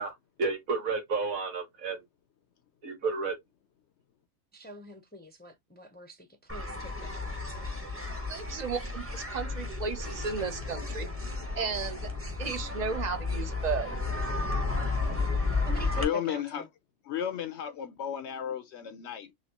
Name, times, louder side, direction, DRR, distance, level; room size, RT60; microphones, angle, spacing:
voice 1, 0.4-2.0 2.8-3.4, right 4 dB, 90° right, 1.9 m, -31 dB
voice 2, 4.5-7.7 15.7-16.7, right 1 dB, 10° left, 0.5 m, -46 dB
sound 1, 6.5-16.0, left 3 dB, 10° right, 0.8 m, -33 dB
voice 3, 8.3-11.1 11.6-12.1 12.4-14.0, right 5 dB, 45° right, 0.6 m, -34 dB
voice 4, 16.0-16.6 17.0-19.3, left 9 dB, 65° left, 0.8 m, -33 dB
4.0 x 3.1 x 2.8 m
omnidirectional pair, 1.4 m